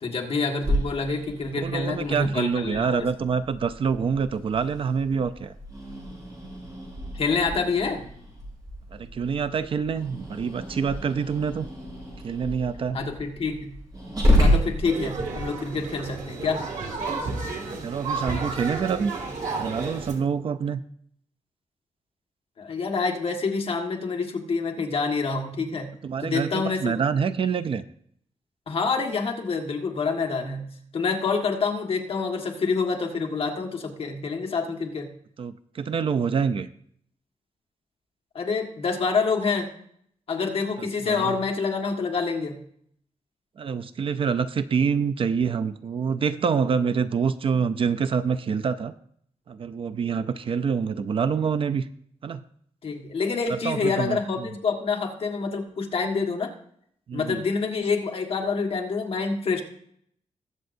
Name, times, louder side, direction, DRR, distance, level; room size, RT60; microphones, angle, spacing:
voice 1, 0.0-3.1 7.1-8.0 12.9-13.8 14.4-16.6 22.6-25.9 26.2-27.0 28.7-35.1 38.4-39.7 40.3-42.6 52.8-56.5 57.1-59.6, left 4 dB, 55° left, 2 dB, 1.6 m, -27 dB
Growling, 0.6-15.4, equal, 35° right, 5.3 m, -30 dB
voice 2, 1.6-5.5 8.9-11.7 12.2-13.0 17.8-19.1 19.6-20.8 26.0-27.8 35.4-36.7 40.8-41.4 43.6-48.9 49.5-51.9 52.2-52.4 53.5-54.5 57.1-57.4, right 6 dB, 50° right, 13 dB, 0.4 m, -26 dB
sound 1, 14.8-20.1, right 3 dB, 85° right, 2.1 m, -32 dB
21.0 x 7.6 x 2.6 m, 0.67 s
wide cardioid pair, 175°, 12 cm